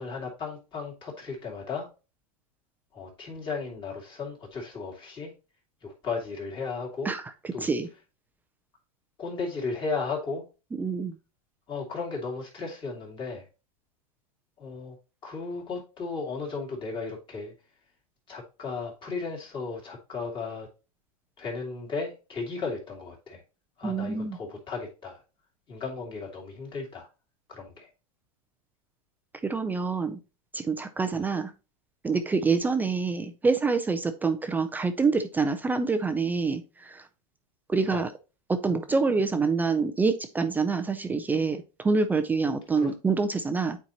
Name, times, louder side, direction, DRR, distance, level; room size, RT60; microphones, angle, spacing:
voice 1, 0.0-1.9 2.9-5.3 5.8-7.1 7.5-7.7 9.2-10.4 11.7-13.5 14.6-15.0 15.2-17.5 18.3-20.7 21.4-23.4 23.8-25.2 25.7-27.1 27.5-27.9 31.1-31.3 37.9-38.0 42.8-42.9, left 4 dB, 25° left, 2.4 m, -35 dB
voice 2, 7.6-7.9 10.8-11.2 23.8-24.4 29.4-30.2 30.5-31.5 32.0-37.0 37.7-38.1 38.5-43.8, right 4 dB, 10° right, 0.4 m, -26 dB
8.7 x 4.6 x 2.8 m
hypercardioid pair, 135°, 19 cm